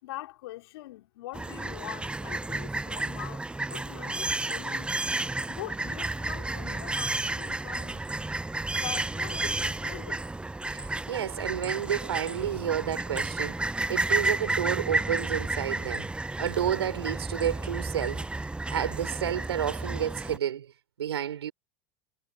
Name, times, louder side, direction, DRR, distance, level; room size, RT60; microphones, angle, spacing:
voice 1, 0.0-4.9 5.5-8.1 8.7-10.2, left 17 dB, 70° left, 3.7 m, -43 dB
sound 1, 1.3-20.4, right 2 dB, 5° right, 0.8 m, -32 dB
voice 2, 10.7-20.7 21.0-21.5, right 9 dB, 85° right, 4.6 m, -31 dB
hypercardioid pair, 90°, 13 cm